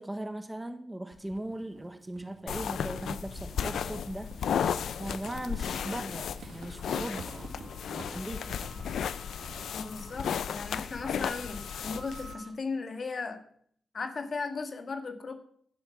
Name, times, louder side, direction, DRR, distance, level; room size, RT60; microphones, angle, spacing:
voice 1, 0.0-4.6 4.9-7.5 7.9-8.6, right 1 dB, 10° right, 8 dB, 1.0 m, -39 dB
Walk footsteps / Squeak, 1.1-10.7, right 4 dB, 70° right, 1.9 m, -50 dB
sound 1, 2.5-12.3, left 8 dB, 85° left, 0.5 m, -34 dB
sound 2, 6.8-12.5, right 3 dB, 40° right, 2.3 m, -53 dB
voice 2, 9.7-13.4 13.9-15.4, left 4 dB, 45° left, 7 dB, 1.6 m, -36 dB
11.0 x 8.0 x 7.1 m, 0.63 s
cardioid pair, 105°, 0 cm